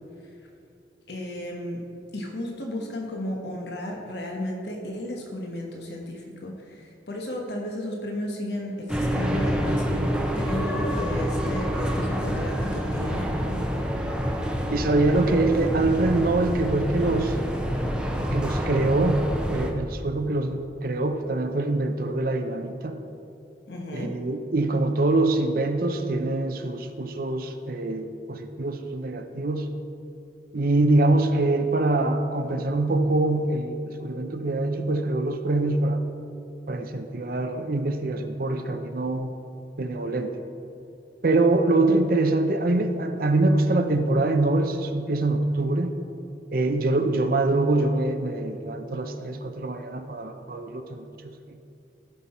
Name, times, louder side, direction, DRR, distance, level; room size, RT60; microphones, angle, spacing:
voice 1, 1.1-1.8 2.1-13.6 23.7-24.1, left 1 dB, 65° left, 0 dB, 1.2 m, -34 dB
sound 1, 8.9-19.7, equal, 5° right, 0.7 m, -27 dB
voice 2, 14.7-17.4 18.2-23.0 23.9-29.7 30.5-36.0 36.7-39.3 39.8-40.4 41.2-45.9 46.5-51.1 51.5-51.6, right 2 dB, 50° right, 6 dB, 0.6 m, -24 dB
15.0 x 5.8 x 4.3 m, 2.7 s
head